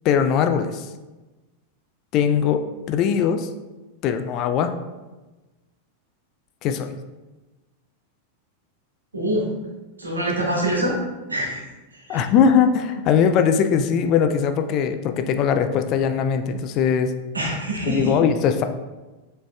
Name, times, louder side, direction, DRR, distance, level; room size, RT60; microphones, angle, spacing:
voice 1, 0.0-0.8 2.1-3.5 4.0-4.7 6.6-6.9 12.1-17.1 17.8-18.6, left 7 dB, 40° left, 7 dB, 0.3 m, -20 dB
voice 2, 9.1-9.5 10.0-11.0 11.3-11.6 12.1-12.2 17.3-18.1, right 1 dB, 80° right, -3 dB, 1.3 m, -24 dB
7.2 x 3.2 x 2.2 m, 1.2 s
figure-of-eight pair, 90°, 0 cm